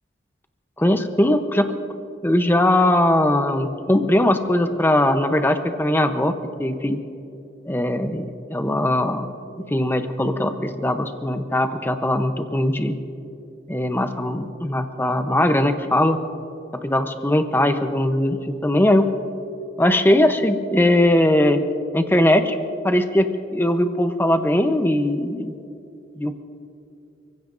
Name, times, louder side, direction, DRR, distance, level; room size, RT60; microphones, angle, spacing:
voice 1, 0.8-1.7 2.2-7.0 7.7-9.3 9.7-13.0 13.7-16.2 16.8-19.1 19.8-21.6 21.9-22.6 22.8-25.5 26.2-26.3, left 1 dB, 10° left, 7 dB, 0.8 m, -20 dB
29.5 x 16.0 x 2.6 m, 2.7 s
head